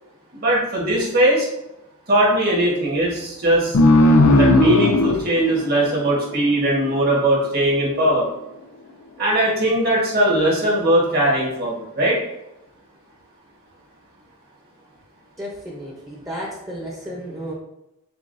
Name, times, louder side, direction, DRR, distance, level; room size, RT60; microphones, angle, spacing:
voice 1, 0.3-1.5 2.1-3.8 4.3-8.3 9.2-12.2, right 1 dB, 45° right, -4 dB, 1.4 m, -19 dB
sound 1, 3.7-6.9, left 2 dB, 90° left, 0.5 m, -16 dB
voice 2, 15.4-17.5, equal, 15° right, -5 dB, 0.8 m, -33 dB
6.8 x 2.4 x 2.6 m, 0.89 s
head